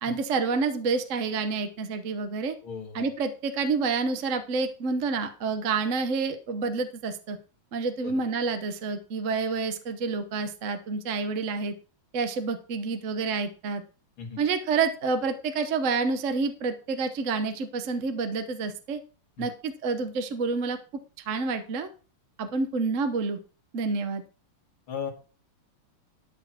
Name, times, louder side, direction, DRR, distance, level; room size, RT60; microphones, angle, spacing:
voice 1, 0.0-2.6 2.9-7.4 7.7-11.7 12.1-13.8 14.4-19.0 19.4-20.8 21.3-21.9 22.4-23.4 23.7-24.2, right 4 dB, 50° right, 8 dB, 1.1 m, -28 dB
voice 2, 2.6-3.1 8.0-8.2 14.2-14.4 19.4-19.5 24.9-25.1, left 7 dB, 85° left, 2 dB, 2.9 m, -36 dB
12.5 x 4.4 x 5.9 m, 0.37 s
omnidirectional pair, 2.2 m